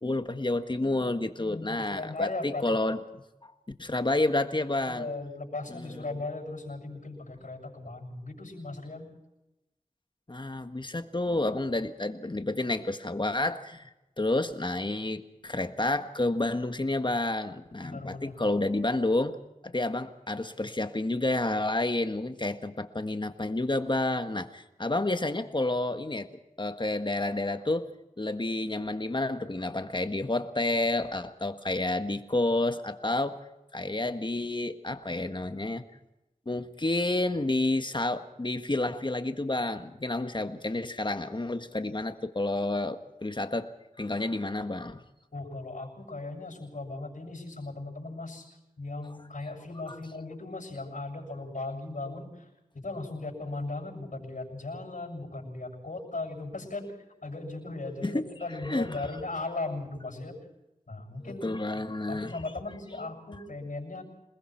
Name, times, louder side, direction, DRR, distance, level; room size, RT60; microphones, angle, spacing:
voice 1, 0.0-3.0 3.4-3.5 3.8-5.1 5.7-6.0 10.3-13.9 14.2-19.4 19.6-26.3 26.6-27.9 28.2-33.4 33.7-35.8 36.4-43.7 44.0-45.0 58.0-58.2 58.6-58.9 61.4-62.3, left 2 dB, 35° left, 8 dB, 1.6 m, -30 dB
voice 2, 1.4-2.8 4.8-9.1 17.8-18.4 45.3-48.5 48.8-52.5 52.7-57.0 57.2-60.4 60.9-61.8 62.1-64.0, left 2 dB, 75° left, -3 dB, 7.2 m, -37 dB
28.0 x 20.5 x 4.6 m, 0.97 s
wide cardioid pair, 60°, 14 cm